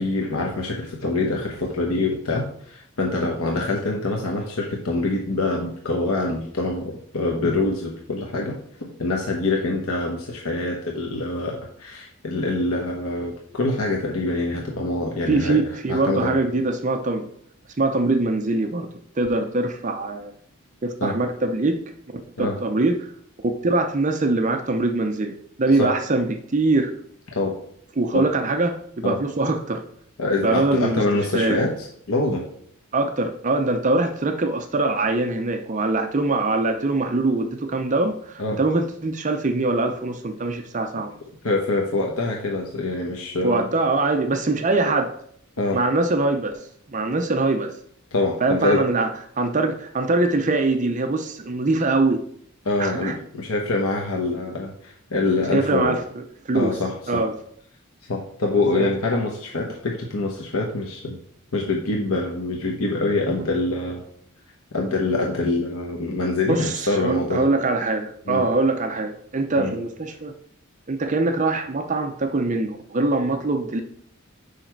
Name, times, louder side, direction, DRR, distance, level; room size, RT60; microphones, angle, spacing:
voice 1, 0.0-15.6 15.9-16.4 21.0-21.2 22.4-22.6 25.8-25.9 27.3-27.6 28.1-28.3 29.0-29.2 30.2-32.4 38.4-38.6 41.4-43.7 45.6-45.8 48.1-48.9 52.6-56.0 56.5-57.2 58.1-61.2 61.5-64.0 64.7-67.5 68.3-68.4 69.6-69.7, left 2 dB, 85° left, 0 dB, 1.0 m, -25 dB
voice 2, 15.3-17.3 17.8-18.9 19.2-20.3 20.8-21.7 22.1-23.1 23.4-25.3 25.6-26.9 28.0-29.8 30.4-31.0 31.3-31.6 32.9-41.1 43.4-45.1 45.7-46.6 46.9-47.7 48.4-49.1 49.4-52.3 52.8-53.2 55.5-56.8 57.1-57.4 58.7-58.9 66.5-70.3 70.9-73.8, right 2 dB, 35° right, 6 dB, 0.6 m, -23 dB
6.5 x 5.0 x 4.5 m, 0.64 s
head